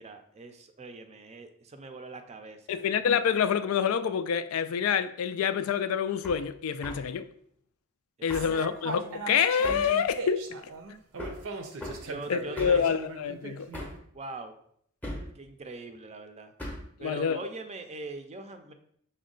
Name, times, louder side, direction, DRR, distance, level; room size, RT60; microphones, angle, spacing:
voice 1, 0.0-2.9 8.2-8.5 11.5-11.6 12.0-12.8 14.1-14.5 15.3-16.5 17.0-18.7, right 3 dB, 30° right, 0.4 m, -42 dB
voice 2, 2.7-7.3 8.2-10.5 12.3-13.7 17.0-17.4, left 7 dB, 85° left, 0.3 m, -27 dB
Hammer, 6.2-6.4 6.8-7.1 8.3-8.6 9.6-9.9 11.2-11.4 11.8-12.0 12.6-12.9 13.7-14.0 15.0-15.3 16.6-16.9, left 1 dB, 10° left, 0.7 m, -38 dB
sound 1, 8.3-13.9, right 3 dB, 85° right, 0.6 m, -39 dB
6.0 x 2.2 x 3.8 m
head